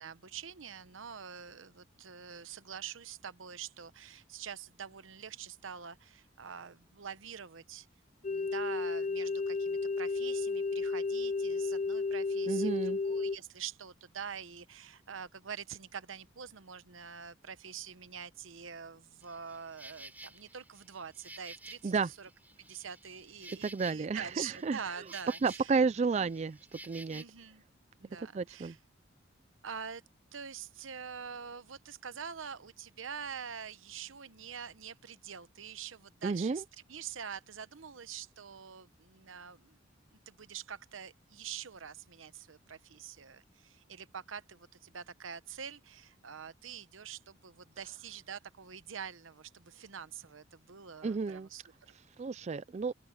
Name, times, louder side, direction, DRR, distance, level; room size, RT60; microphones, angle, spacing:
voice 1, 0.0-7.9 8.2-21.9 22.2-22.3 22.6-25.7 26.0-26.3 27.1-27.6 28.0-28.8 29.6-30.0 30.3-36.6 36.9-39.8 40.1-51.6, right 7 dB, 85° right, 0.9 m, -45 dB
sound 1, 8.2-13.4, left 4 dB, 35° left, 0.6 m, -33 dB
voice 2, 12.5-13.0 21.8-22.1 23.6-25.0 25.4-27.2 28.3-28.8 36.2-36.6 51.0-51.5 52.2-52.9, right 4 dB, 35° right, 0.3 m, -32 dB
Insect, 19.2-27.2, right 2 dB, 10° right, 3.8 m, -52 dB
open air
head